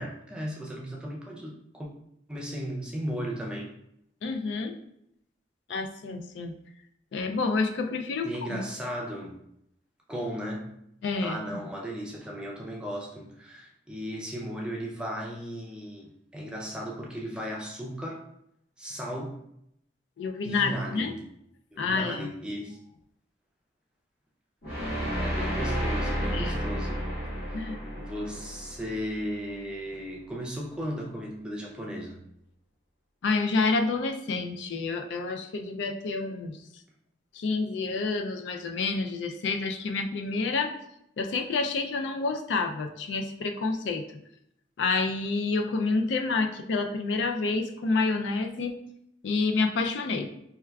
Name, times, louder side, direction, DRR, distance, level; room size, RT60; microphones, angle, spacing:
voice 1, 0.0-1.9 2.3-3.7 8.2-9.4 10.1-10.7 11.2-18.2 18.8-19.4 20.4-21.1 21.7-22.8 25.2-27.0 27.5-27.7 27.9-32.2, equal, 5° right, -2 dB, 0.4 m, -36 dB
voice 2, 4.2-4.7 5.7-6.6 7.1-8.6 11.0-11.4 20.2-21.1 21.8-22.3 26.3-26.6 27.5-27.8 33.2-36.6 37.3-40.7 41.2-44.1 44.8-48.7 49.2-50.3, left 3 dB, 80° left, 6 dB, 0.3 m, -28 dB
sound 1, 24.6-29.7, equal, 50° left, 1.5 m, -32 dB
4.4 x 2.3 x 2.2 m, 0.77 s
head